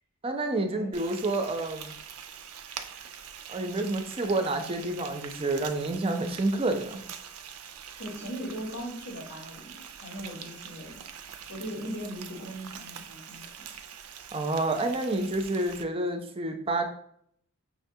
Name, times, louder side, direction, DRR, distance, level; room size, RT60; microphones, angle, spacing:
voice 1, 0.2-2.0 3.5-7.0 14.3-16.8, right 2 dB, 25° right, 5 dB, 0.5 m, -29 dB
Frying (food), 0.9-15.8, right 8 dB, 90° right, 0.4 m, -44 dB
voice 2, 8.0-11.0 11.5-13.7, equal, 75° left, -2 dB, 1.1 m, -39 dB
5.7 x 2.3 x 2.7 m, 0.65 s
head